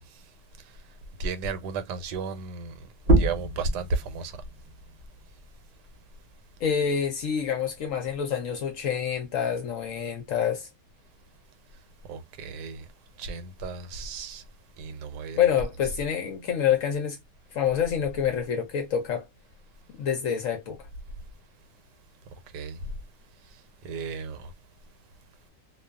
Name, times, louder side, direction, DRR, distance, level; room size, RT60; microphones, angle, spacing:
voice 1, 1.2-2.7 3.1-4.3 12.1-12.8 13.2-14.4 14.8-15.4 22.5-22.8 23.8-24.5, right 4 dB, 80° right, 1.2 m, -33 dB
sound 1, 3.0-8.2 8.6-10.4, right 1 dB, 60° right, 0.5 m, -29 dB
voice 2, 6.6-10.7 15.4-17.2 17.5-19.3 20.0-20.8, left 8 dB, 65° left, 0.8 m, -27 dB
2.5 x 2.3 x 2.2 m
omnidirectional pair, 1.8 m